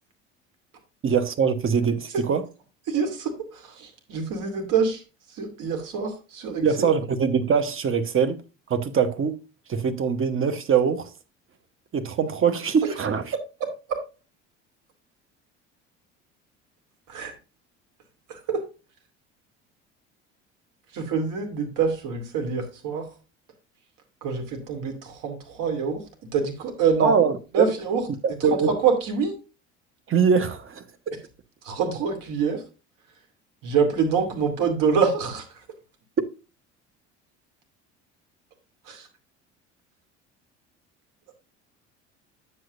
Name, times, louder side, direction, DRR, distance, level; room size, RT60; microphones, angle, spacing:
voice 1, 1.0-2.5 6.6-8.4 8.7-9.4 9.7-11.1 11.9-13.4 27.0-27.7 28.2-28.8 30.1-31.1, right 6 dB, 35° right, 1.1 m, -23 dB
voice 2, 2.9-3.3 3.8-5.0 5.4-6.9 13.6-13.7 17.1-17.3 18.3-18.6 20.9-23.0 24.2-26.0 26.3-27.2 27.5-28.0 28.7-29.3 31.6-32.6 33.6-35.4 38.9-39.0, right 6 dB, 60° right, 2.5 m, -25 dB
9.3 x 7.7 x 2.5 m
hypercardioid pair, 65°, 36 cm